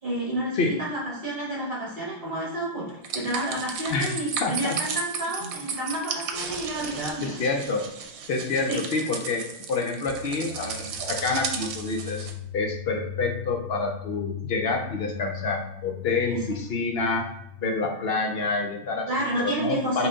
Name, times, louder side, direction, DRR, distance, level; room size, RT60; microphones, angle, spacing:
voice 1, 0.0-2.8 3.1-7.4 8.7-8.8 10.7-11.2 19.1-20.1, right 1 dB, 45° right, -6 dB, 1.6 m, -30 dB
sound 1, 3.0-12.3, right 6 dB, 85° right, 1.1 m, -34 dB
voice 2, 4.4-4.8 7.2-7.9 8.3-12.3 12.5-17.3 17.6-19.1 19.4-20.1, left 3 dB, 60° left, 3 dB, 0.7 m, -27 dB
sound 2, 10.1-17.8, left 9 dB, 90° left, 1.1 m, -39 dB
5.3 x 2.4 x 3.8 m, 0.78 s
omnidirectional pair, 1.4 m